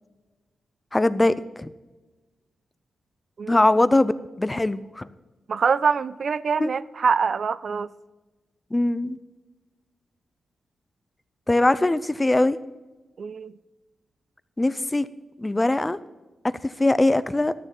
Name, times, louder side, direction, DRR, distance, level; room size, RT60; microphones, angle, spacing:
voice 1, 0.9-1.7 3.5-4.1 4.4-5.1 6.6-6.7 8.7-9.2 11.5-12.6 14.6-15.1 15.4-16.0 16.6-17.5, left 2 dB, 20° left, 15 dB, 0.6 m, -21 dB
voice 2, 3.4-3.8 5.5-7.9 13.2-13.5, right 5 dB, 60° right, 17 dB, 0.4 m, -24 dB
12.5 x 7.0 x 5.4 m, 1.2 s
cardioid pair, 55°, 0 cm